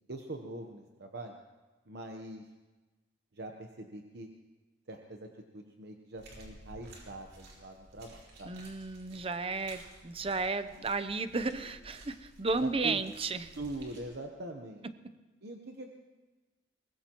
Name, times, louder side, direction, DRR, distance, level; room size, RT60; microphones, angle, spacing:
voice 1, 0.1-1.4 1.9-2.4 3.3-4.3 4.9-8.5 12.6-13.0 13.6-14.9 15.4-15.9, right 1 dB, 60° right, 3 dB, 1.0 m, -43 dB
sound 1, 6.2-14.0, right 1 dB, 80° right, 4.9 m, -54 dB
voice 2, 8.4-13.6, right 3 dB, 30° right, 11 dB, 0.7 m, -33 dB
23.0 x 20.5 x 3.0 m, 1.2 s
head